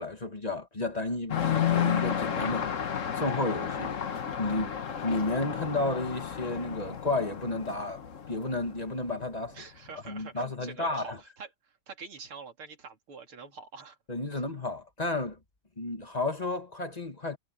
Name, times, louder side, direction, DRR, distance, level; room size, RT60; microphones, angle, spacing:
voice 1, 0.0-4.7 5.0-8.0 8.3-9.6 10.0-11.2 14.1-15.4 15.8-17.4, left 2 dB, 20° left, 1.5 m, -32 dB
sound 1, 1.3-9.6, left 8 dB, 45° left, 1.3 m, -32 dB
voice 2, 9.5-14.0 14.3-14.4, right 5 dB, 75° right, 3.8 m, -46 dB
omnidirectional pair, 2.4 m